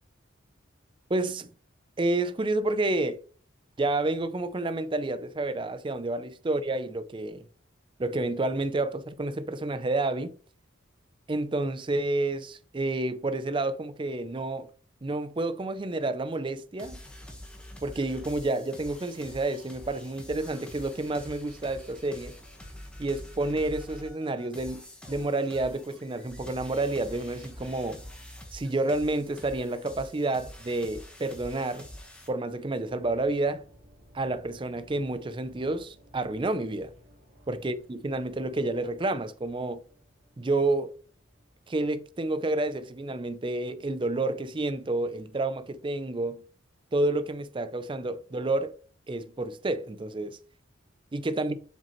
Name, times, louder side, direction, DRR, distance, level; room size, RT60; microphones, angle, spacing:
voice 1, 1.1-1.5 2.0-3.2 3.8-7.5 8.0-10.3 11.3-14.7 15.0-17.0 17.8-22.4 23.0-28.0 28.5-31.9 32.3-33.6 34.1-36.9 37.5-39.8 40.4-40.9 41.7-46.4 46.9-48.7 49.1-50.4 51.1-51.6, right 2 dB, 25° right, 0.4 m, -29 dB
sound 1, 16.8-32.3, left 1 dB, 5° left, 1.2 m, -46 dB
sound 2, 32.9-42.9 43.1-43.4, equal, 60° right, 2.0 m, -58 dB
7.2 x 5.2 x 3.0 m
head